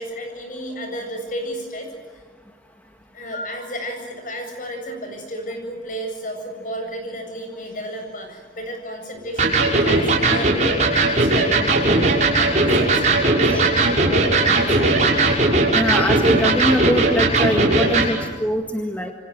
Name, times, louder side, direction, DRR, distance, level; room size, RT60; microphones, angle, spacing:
voice 1, 0.0-1.9 3.1-14.9, equal, 45° left, 4 dB, 7.7 m, -32 dB
Electric guitar, 9.4-18.1, right 2 dB, 40° right, 6.4 m, -18 dB
voice 2, 15.7-19.1, equal, 10° left, 3 dB, 1.8 m, -23 dB
28.0 x 25.5 x 8.0 m, 1.4 s
head